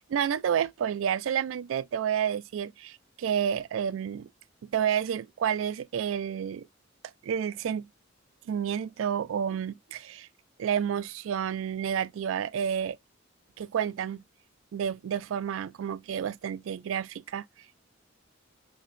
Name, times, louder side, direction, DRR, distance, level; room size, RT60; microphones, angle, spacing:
voice 1, 0.1-4.3 4.6-6.7 7.2-7.9 8.5-10.3 10.6-13.0 13.6-14.2 14.7-17.4, right 8 dB, 80° right, 0.3 m, -30 dB
4.2 x 2.9 x 3.1 m
head